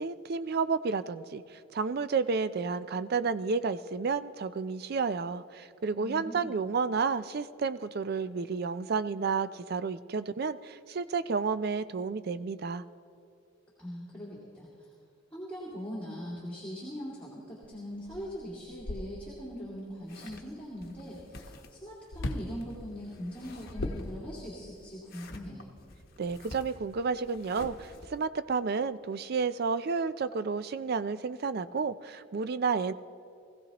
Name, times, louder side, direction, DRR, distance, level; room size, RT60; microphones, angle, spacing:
voice 1, 0.0-12.8 26.2-32.9, right 5 dB, 50° right, 13 dB, 0.4 m, -31 dB
voice 2, 6.0-6.6 13.8-14.9 15.3-25.6, equal, 5° left, -8 dB, 2.3 m, -41 dB
sound 1, 17.6-17.7 18.1-19.6 22.1-22.6 23.4-24.6, left 2 dB, 65° left, 0.7 m, -38 dB
sound 2, 20.0-28.3, left 1 dB, 45° left, 1.1 m, -47 dB
20.5 x 15.5 x 3.0 m, 2.6 s
head